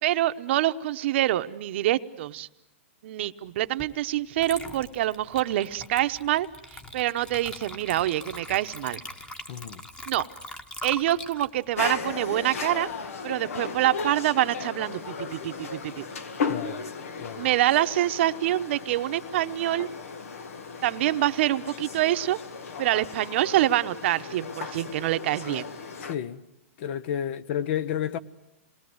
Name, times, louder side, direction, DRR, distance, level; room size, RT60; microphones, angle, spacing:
voice 1, 0.0-2.5 3.0-9.0 10.1-10.3 10.8-12.9 13.2-16.0 17.4-19.9 20.8-22.4 22.8-25.6, right 14 dB, 55° right, 1.0 m, -26 dB
Water / Liquid, 3.8-4.0 4.4-12.9, left 1 dB, 10° left, 1.3 m, -42 dB
voice 2, 9.5-9.8 16.5-16.8 17.2-17.5 26.0-26.4 26.8-28.2, left 9 dB, 50° left, 1.1 m, -31 dB
sound 1, 11.7-26.2, left 5 dB, 80° left, 2.2 m, -36 dB
27.5 x 21.0 x 8.0 m
hypercardioid pair, 150°, 7 cm